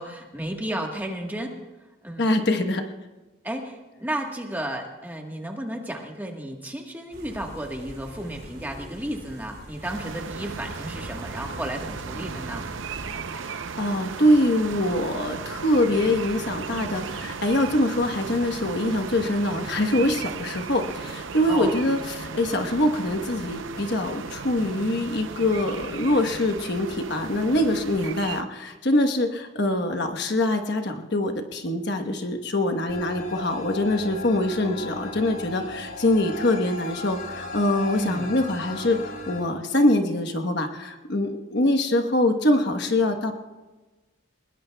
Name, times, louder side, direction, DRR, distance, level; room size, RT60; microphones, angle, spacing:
voice 1, 0.0-1.6 2.0-2.3 3.4-12.7 21.5-21.8 37.9-38.3, right 1 dB, 10° right, 1 dB, 1.4 m, -33 dB
voice 2, 2.2-2.8 13.5-43.3, left 1 dB, 55° left, 6 dB, 1.2 m, -24 dB
sound 1, 7.1-13.2, right 1 dB, 50° right, 4.3 m, -43 dB
sound 2, 9.8-28.4, right 5 dB, 70° right, 0.7 m, -36 dB
sound 3, 32.9-39.4, left 2 dB, 80° left, 4.2 m, -37 dB
22.5 x 21.0 x 2.3 m, 1.2 s
head